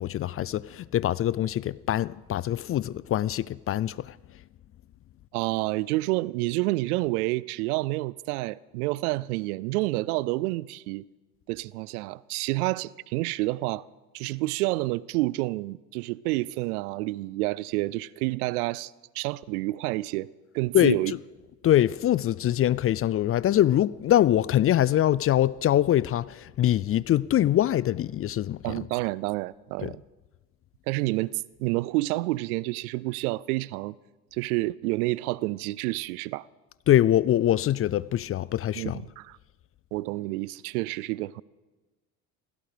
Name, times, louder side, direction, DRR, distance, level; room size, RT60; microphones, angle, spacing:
voice 1, 0.0-4.2 20.7-21.0 21.6-28.7 29.8-29.9 36.9-39.0, left 12 dB, 35° left, 0.4 m, -23 dB
voice 2, 5.3-11.0 11.5-13.9 14.1-20.3 20.5-21.1 28.6-30.0 30.9-34.0 34.3-36.5 38.8-39.4 39.9-41.4, right 20 dB, 80° right, 0.5 m, -29 dB
17.0 x 15.5 x 5.1 m
hypercardioid pair, 70°, 44 cm